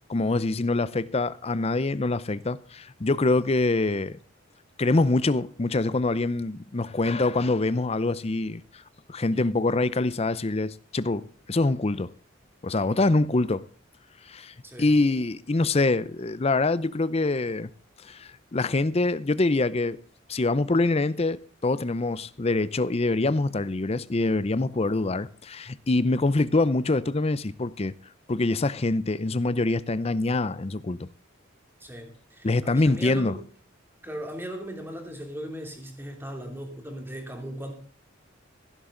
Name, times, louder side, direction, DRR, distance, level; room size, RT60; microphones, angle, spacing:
voice 1, 0.1-4.2 4.8-8.8 9.1-12.1 12.6-13.6 14.2-17.7 18.0-20.0 20.3-27.9 28.3-31.1 32.4-33.3, left 2 dB, 30° left, 0.6 m, -25 dB
voice 2, 14.6-14.9 31.8-33.4 34.0-37.7, equal, 10° right, 2.8 m, -38 dB
16.0 x 11.5 x 3.8 m
head